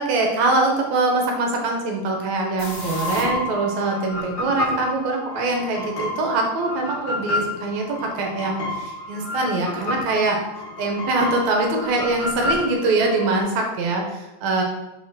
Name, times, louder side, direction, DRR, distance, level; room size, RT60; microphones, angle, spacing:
voice 1, 0.0-10.4 10.8-14.6, right 2 dB, 75° right, 1 dB, 2.3 m, -23 dB
sound 1, 2.6-13.4, left 1 dB, 45° left, 2.0 m, -30 dB
6.6 x 5.2 x 3.7 m, 1.0 s
omnidirectional pair, 3.5 m